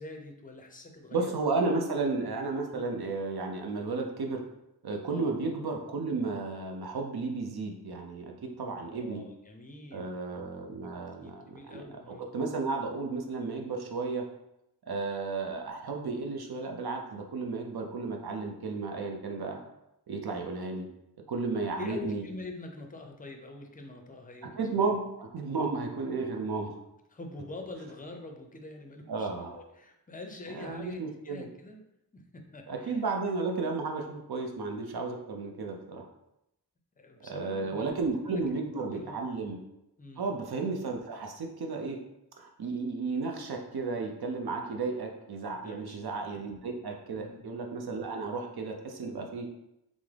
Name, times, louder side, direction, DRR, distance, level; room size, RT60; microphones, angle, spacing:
voice 1, 0.0-1.3 2.6-2.8 5.0-5.3 8.8-10.9 11.2-12.3 21.8-24.8 27.1-29.3 29.5-31.8 32.1-33.0 37.0-38.0 38.3-38.4 38.7-39.2 40.0-40.3 45.5-46.0 46.4-46.5 47.1-47.4, left 2 dB, 20° left, 3 dB, 0.5 m, -45 dB
voice 2, 1.1-4.4 4.8-9.2 9.9-14.2 14.9-19.6 20.1-20.9 21.3-22.2 24.6-26.8 29.1-29.6 30.5-31.5 32.7-36.0 37.2-39.6 40.2-42.0 42.4-49.5, right 3 dB, 65° right, 2 dB, 0.6 m, -33 dB
3.4 x 2.0 x 3.2 m, 0.85 s
wide cardioid pair, 60°, 41 cm